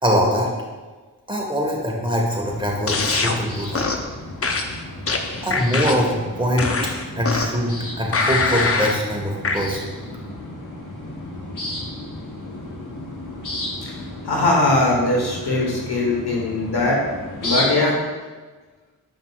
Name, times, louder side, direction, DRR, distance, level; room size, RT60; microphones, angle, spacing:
voice 1, 0.0-0.5 1.3-3.9 5.4-9.9, equal, 15° right, -1 dB, 1.5 m, -23 dB
sound 1, 2.3-17.7, left 1 dB, 55° left, 1.2 m, -33 dB
sound 2, 2.9-3.4 3.7-4.1 4.4-6.1 6.6-7.6 8.1-9.0 9.4-9.6, left 3 dB, 35° left, 0.7 m, -23 dB
voice 2, 14.2-17.0 17.4-18.0, left 2 dB, 85° left, -2 dB, 1.4 m, -20 dB
7.6 x 5.4 x 2.4 m, 1.3 s
cardioid pair, 45°, 38 cm